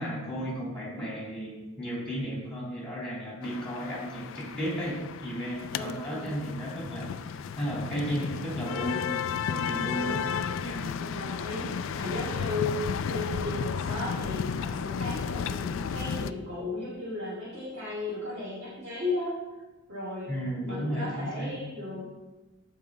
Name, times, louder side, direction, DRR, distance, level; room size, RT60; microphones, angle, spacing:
voice 1, 0.0-9.1 9.5-10.2 10.6-10.9 20.3-21.5, equal, 5° left, -6 dB, 3.4 m, -34 dB
sound 1, 3.4-16.3, left 7 dB, 60° left, 0.3 m, -33 dB
voice 2, 5.7-6.4 9.7-10.5 11.0-19.4 19.9-20.3 20.6-22.1, left 2 dB, 55° right, -9 dB, 2.1 m, -35 dB
14.0 x 4.8 x 3.9 m, 1.1 s
head